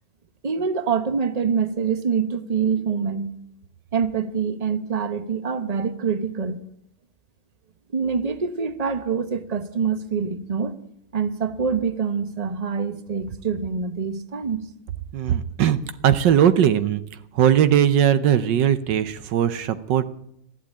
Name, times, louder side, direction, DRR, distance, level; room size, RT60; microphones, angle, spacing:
voice 1, 0.4-3.3 3.9-6.6 7.9-10.7 11.1-14.6, right 6 dB, 30° right, 10 dB, 0.8 m, -25 dB
voice 2, 15.1-15.8 16.0-17.0 17.3-20.1, right 9 dB, 70° right, 12 dB, 1.4 m, -19 dB
15.0 x 11.5 x 8.5 m, 0.74 s
omnidirectional pair, 2.0 m